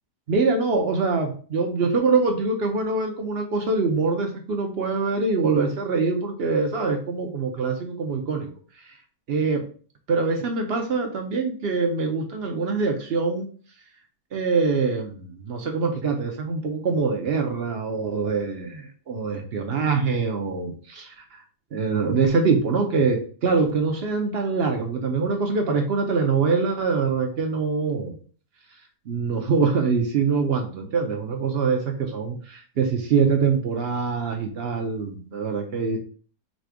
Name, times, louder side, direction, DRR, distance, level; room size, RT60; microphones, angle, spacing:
voice 1, 0.3-8.5 9.3-9.6 10.1-13.5 14.3-21.2 21.7-28.2 29.1-36.0, right 4 dB, 70° right, 3 dB, 0.5 m, -24 dB
4.2 x 2.6 x 4.7 m, 0.43 s
omnidirectional pair, 1.8 m